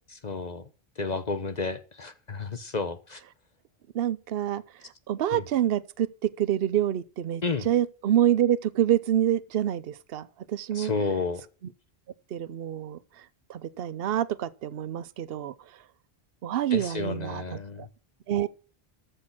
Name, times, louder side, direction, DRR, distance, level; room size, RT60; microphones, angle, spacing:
voice 1, 0.2-0.7 1.0-3.2 5.3-5.4 7.4-7.7 10.7-11.4 16.7-17.9, left 4 dB, 45° left, 0.9 m, -31 dB
voice 2, 3.9-4.6 5.1-10.9 12.3-13.0 13.5-15.5 16.4-17.4 18.3-18.5, right 11 dB, 70° right, 0.9 m, -27 dB
14.0 x 6.5 x 6.0 m
omnidirectional pair, 1.0 m